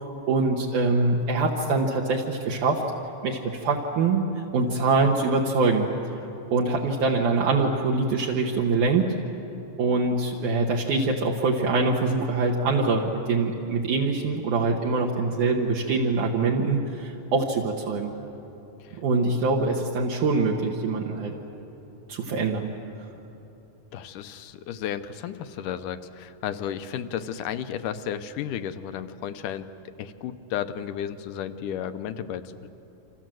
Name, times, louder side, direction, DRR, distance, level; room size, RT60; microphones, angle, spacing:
voice 1, 0.3-2.9 3.2-5.9 6.5-9.1 9.8-18.1 18.9-21.3 22.1-22.7, right 3 dB, 65° right, -2 dB, 2.8 m, -24 dB
voice 2, 23.9-29.7 30.0-32.7, left 9 dB, 75° left, 10 dB, 2.4 m, -33 dB
28.5 x 26.5 x 7.8 m, 3.0 s
omnidirectional pair, 3.9 m